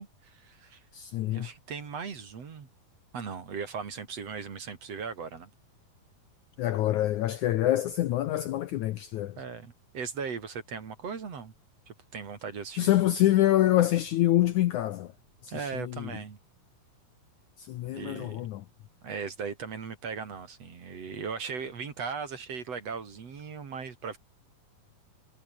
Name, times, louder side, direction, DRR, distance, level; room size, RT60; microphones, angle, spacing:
voice 1, 0.0-0.8 1.3-2.7 3.1-5.5 9.4-11.5 11.9-13.1 15.5-16.4 17.9-18.4 19.0-24.2, right 5 dB, 45° right, 3.5 m, -38 dB
voice 2, 0.9-1.5 6.6-9.4 12.8-15.1 15.4-16.1 17.6-18.7, left 14 dB, 70° left, 1.9 m, -26 dB
omnidirectional pair, 4.2 m